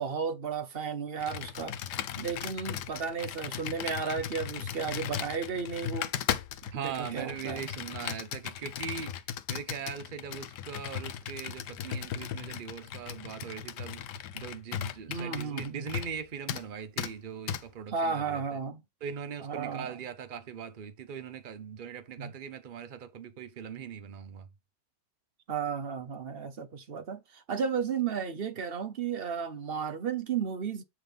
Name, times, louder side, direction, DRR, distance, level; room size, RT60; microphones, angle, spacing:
voice 1, 0.0-1.8 2.2-6.1 6.7-7.7 15.1-15.9 17.9-18.8 19.4-20.0 22.2-22.3 25.5-30.8, right 6 dB, 45° right, 0.8 m, -33 dB
Computer keyboard, 1.2-16.2 16.5-16.7 17.0-17.1 17.5-17.6, left 9 dB, 75° left, 1.3 m, -37 dB
voice 2, 6.7-9.2 9.5-14.0 14.3-18.4 19.0-24.5, right 7 dB, 75° right, 0.4 m, -40 dB
8.6 x 3.8 x 5.0 m
omnidirectional pair, 1.9 m